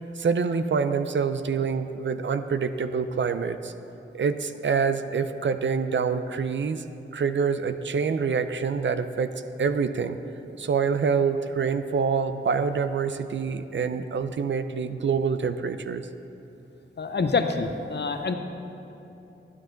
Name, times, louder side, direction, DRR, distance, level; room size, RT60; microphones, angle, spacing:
voice 1, 0.2-3.7 4.1-6.8 7.1-9.3 9.6-10.2 10.6-16.1, right 5 dB, 65° right, 10 dB, 0.5 m, -26 dB
voice 2, 17.0-18.3, left 4 dB, 55° left, 7 dB, 0.7 m, -26 dB
12.5 x 9.6 x 3.9 m, 2.9 s
wide cardioid pair, 105°, 21 cm